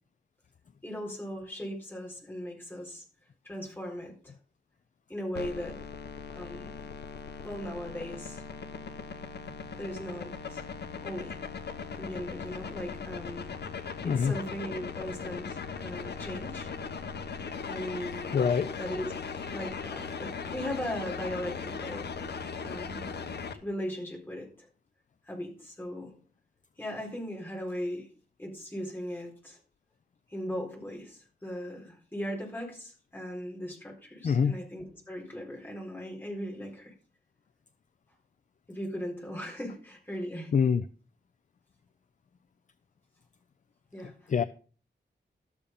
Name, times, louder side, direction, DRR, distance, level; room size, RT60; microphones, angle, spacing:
voice 1, 0.8-3.0 3.4-4.3 5.1-5.8 6.3-6.7 7.4-8.4 9.8-10.7 11.0-11.4 11.9-13.5 14.0-16.7 17.7-18.4 18.8-19.1 19.5-22.1 22.6-23.1 23.6-24.7 25.3-26.1 26.8-28.1 28.4-29.6 30.3-36.9 38.7-40.5 43.9-44.3, equal, 10° left, 4.1 m, -38 dB
sound 1, 5.4-23.5, left 5 dB, 60° left, 1.0 m, -39 dB
voice 2, 14.0-14.4 18.3-18.7 34.2-34.6 40.5-40.8 44.3-44.4, left 6 dB, 40° left, 0.4 m, -24 dB
12.5 x 7.0 x 5.3 m
wide cardioid pair, 180°, 19 cm